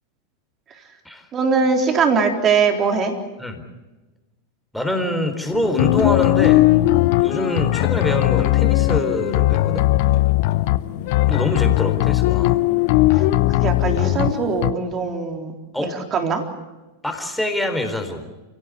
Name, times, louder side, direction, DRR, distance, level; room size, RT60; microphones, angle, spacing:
voice 1, 1.3-3.2 13.2-16.5, right 5 dB, 25° right, 3 dB, 3.9 m, -21 dB
voice 2, 4.7-6.7 7.2-9.9 11.3-12.6 15.7-15.9 17.0-18.3, left 1 dB, ahead, 5 dB, 4.1 m, -25 dB
sound 1, 5.5-14.7, left 17 dB, 50° left, 0.9 m, -18 dB
29.5 x 17.5 x 8.5 m, 1.1 s
figure-of-eight pair, 90°, 0 cm